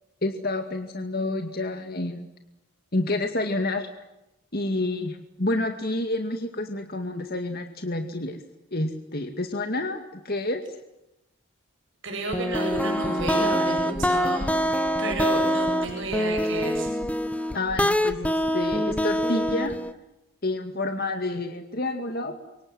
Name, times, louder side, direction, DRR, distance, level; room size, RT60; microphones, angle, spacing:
voice 1, 0.2-2.3 2.9-3.9 4.5-8.4 8.7-10.6 17.5-19.8 20.4-22.3, left 2 dB, 45° left, 5 dB, 2.2 m, -29 dB
voice 2, 12.0-14.6 15.0-16.9, right 2 dB, 55° right, 2 dB, 7.8 m, -31 dB
sound 1, 12.3-19.9, equal, 5° left, 1.2 m, -25 dB
29.0 x 25.5 x 7.8 m, 0.90 s
head